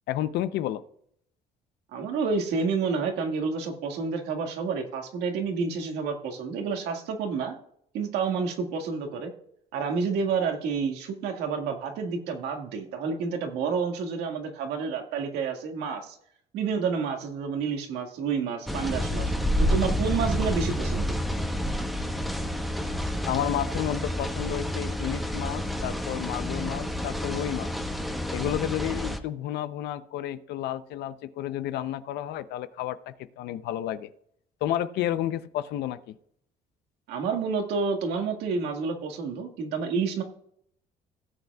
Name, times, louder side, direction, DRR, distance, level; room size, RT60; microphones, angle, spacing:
voice 1, 0.1-0.8 23.3-27.7 28.3-34.1 34.6-36.2, left 12 dB, 80° left, 13 dB, 0.7 m, -31 dB
voice 2, 1.9-7.6 7.9-9.3 9.7-16.2 16.5-19.3 19.6-21.2 37.1-40.2, right 5 dB, 85° right, 3 dB, 1.9 m, -29 dB
sound 1, 18.7-29.2, equal, ahead, 1.0 m, -29 dB
17.0 x 8.1 x 2.4 m, 0.67 s
cardioid pair, 110°, 17 cm